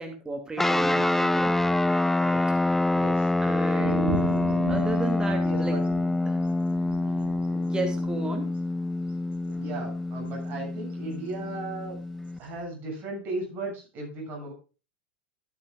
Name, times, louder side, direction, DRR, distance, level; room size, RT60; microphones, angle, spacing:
voice 1, 0.0-1.5 3.4-4.3 4.7-5.7 6.3-6.4 7.5-8.5, right 2 dB, 15° right, 5 dB, 2.4 m, -33 dB
sound 1, 0.6-12.4, left 2 dB, 5° left, 0.5 m, -26 dB
voice 2, 2.9-3.3 5.4-5.8 7.0-7.3 9.6-12.0 12.4-14.5, right 2 dB, 40° right, 1 dB, 7.2 m, -36 dB
sound 2, 3.8-10.6 10.9-11.0 12.1-12.6, right 3 dB, 70° right, 2.7 m, -37 dB
15.0 x 9.2 x 2.4 m, 0.33 s
hypercardioid pair, 90°, 6 cm